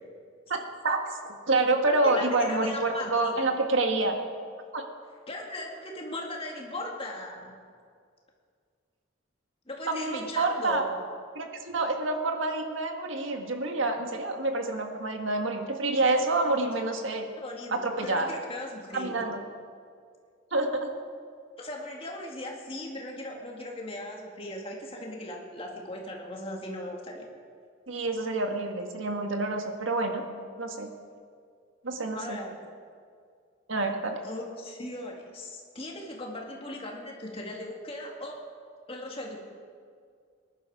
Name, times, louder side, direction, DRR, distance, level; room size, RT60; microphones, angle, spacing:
voice 1, 0.5-4.2 4.7-4.8 9.9-10.8 11.3-17.3 17.7-18.3 18.9-19.4 20.5-20.9 27.9-30.2 30.6-30.9 31.8-32.4 33.7-34.2, right 2 dB, 65° right, 4 dB, 1.6 m, -28 dB
voice 2, 1.9-3.4 5.3-7.5 9.7-11.0 17.4-19.2 21.6-27.3 32.1-32.6 34.2-38.4 38.9-39.4, left 1 dB, 25° left, 0 dB, 2.1 m, -38 dB
19.5 x 11.0 x 4.9 m, 2.2 s
head